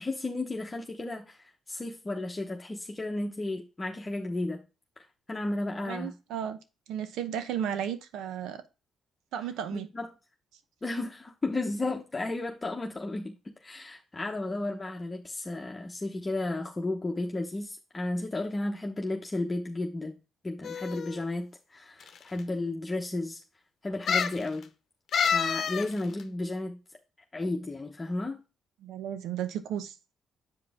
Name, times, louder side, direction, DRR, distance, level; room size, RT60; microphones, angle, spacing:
voice 1, 0.0-4.6 5.0-6.1 9.7-10.1 10.8-13.4 13.6-20.2 20.4-23.4 23.8-24.7 25.2-26.8 27.3-28.4, left 2 dB, 20° left, 1.1 m, -33 dB
voice 2, 5.8-6.6 6.9-8.6 9.3-9.9 28.8-30.0, right 9 dB, 85° right, 0.9 m, -34 dB
sound 1, 20.6-21.2 22.0-22.1 22.4-22.5 24.1-24.4 25.1-25.9 26.2-26.3, left 6 dB, 60° left, 0.9 m, -28 dB
7.8 x 5.0 x 3.6 m
cardioid pair, 90°, 0 cm